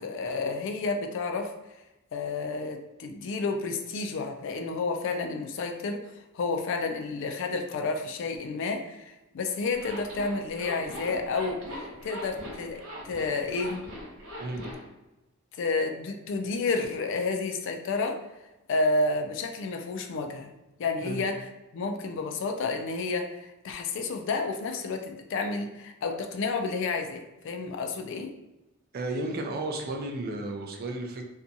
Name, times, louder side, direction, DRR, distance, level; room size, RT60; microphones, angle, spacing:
voice 1, 0.0-1.5 2.1-6.1 6.3-13.9 15.6-18.2 18.7-20.5 20.8-28.3, left 3 dB, 60° left, 4 dB, 0.3 m, -30 dB
Zipper (clothing), 9.7-14.8, equal, 70° right, 0.8 m, -40 dB
voice 2, 28.9-31.2, right 2 dB, 45° right, 3 dB, 0.4 m, -33 dB
2.6 x 2.2 x 2.6 m, 0.99 s
head